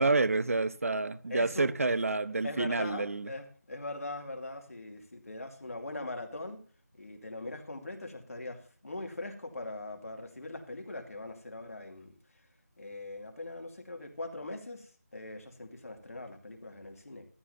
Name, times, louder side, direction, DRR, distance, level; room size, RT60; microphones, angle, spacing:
voice 1, 0.0-3.3, right 3 dB, 60° right, 0.9 m, -28 dB
voice 2, 1.3-1.7 2.4-6.6 7.0-12.1 12.8-17.2, left 2 dB, 60° left, 2.6 m, -41 dB
14.0 x 11.5 x 2.8 m
figure-of-eight pair, 170°, 9 cm